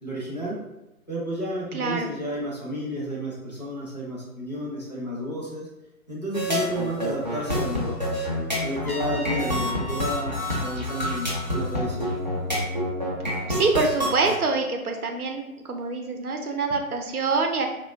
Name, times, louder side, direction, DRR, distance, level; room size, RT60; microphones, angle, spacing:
voice 1, 0.0-0.6 1.1-5.7 6.1-8.0 8.6-12.1, equal, 30° left, -7 dB, 0.5 m, -31 dB
voice 2, 1.7-2.1 13.2-17.7, right 4 dB, 85° right, 4 dB, 0.6 m, -26 dB
sound 1, 6.3-14.4, left 1 dB, 35° right, 0.4 m, -28 dB
Trumpet, 8.8-11.8, left 2 dB, 85° left, 0.8 m, -40 dB
2.7 x 2.1 x 2.4 m, 0.92 s
figure-of-eight pair, 145°, 43 cm